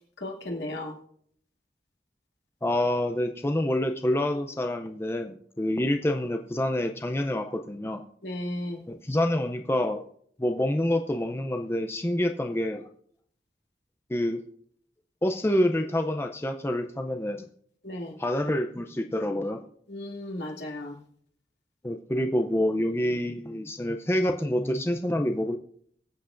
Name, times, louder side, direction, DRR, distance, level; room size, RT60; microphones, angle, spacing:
voice 1, 0.2-0.9 8.2-8.8 17.8-18.2 19.9-21.0, left 1 dB, 80° left, 0 dB, 2.3 m, -35 dB
voice 2, 2.6-8.0 8.9-10.1 10.4-12.8 14.1-14.4 15.2-17.5 18.2-19.6 21.8-25.6, left 1 dB, 15° left, 5 dB, 0.5 m, -27 dB
22.5 x 7.9 x 2.5 m, 0.64 s
head